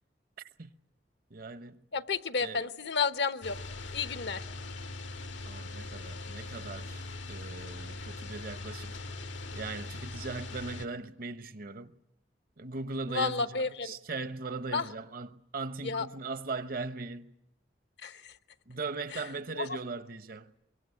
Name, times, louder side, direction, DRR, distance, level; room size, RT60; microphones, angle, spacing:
voice 1, 1.3-1.8 2.4-2.6 5.5-7.0 7.3-9.0 9.5-11.9 12.6-17.3 18.7-20.5, right 3 dB, 50° right, 0.9 m, -39 dB
voice 2, 1.9-3.6 3.9-4.5 13.1-13.9 14.7-14.9 15.8-16.1 18.0-18.3 19.1-19.2 19.6-19.7, left 5 dB, 65° left, 0.9 m, -31 dB
sound 1, 3.4-10.9, left 2 dB, 85° left, 1.6 m, -41 dB
24.0 x 23.0 x 9.6 m
head